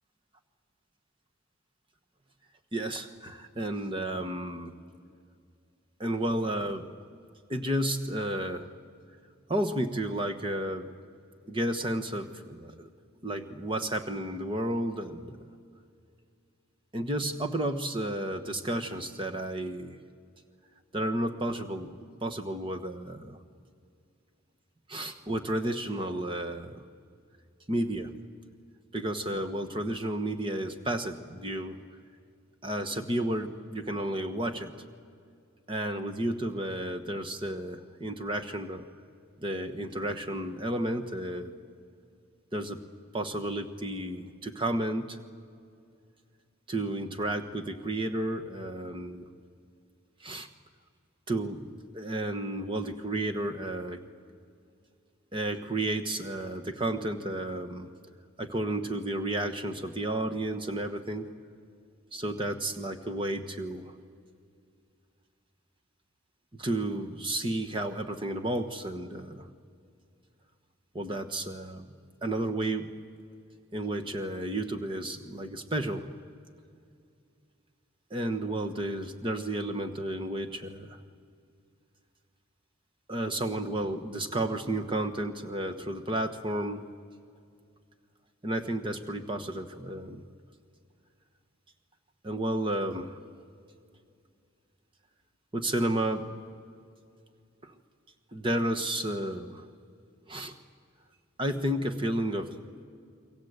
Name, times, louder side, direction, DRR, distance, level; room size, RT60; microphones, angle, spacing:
voice 1, 2.7-4.7 6.0-6.8 7.5-8.7 9.5-10.9 11.5-12.9 13.2-15.5 16.9-20.0 20.9-22.0 22.2-23.4 24.9-26.8 27.7-28.1 28.9-31.8 32.6-34.7 35.7-38.8 39.4-41.5 42.5-42.8 43.1-45.2 46.7-49.3 50.2-50.5 51.3-54.0 55.3-57.9 58.4-61.3 62.1-63.9 66.6-69.5 70.9-71.9 72.2-72.9 73.7-76.1 78.1-81.0 83.1-86.8 88.4-90.2 92.2-93.2 95.5-96.3 97.6-97.7 98.3-99.6 100.3-100.5 101.4-102.5, right 1 dB, 25° right, 5 dB, 1.3 m, -32 dB
29.0 x 23.0 x 8.2 m, 2.4 s
head